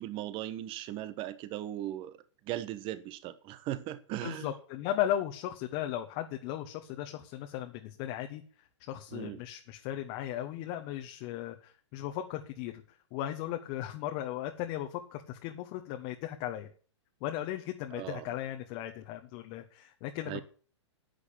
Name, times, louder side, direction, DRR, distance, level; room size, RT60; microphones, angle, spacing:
voice 1, 0.0-2.2 2.5-4.5 9.1-9.4 17.9-18.2 20.2-20.4, right 13 dB, 35° right, 1.4 m, -38 dB
voice 2, 4.2-12.7 13.1-16.7 17.2-20.4, left 12 dB, 40° left, 1.4 m, -36 dB
10.5 x 8.2 x 8.6 m
hypercardioid pair, 120°, 16 cm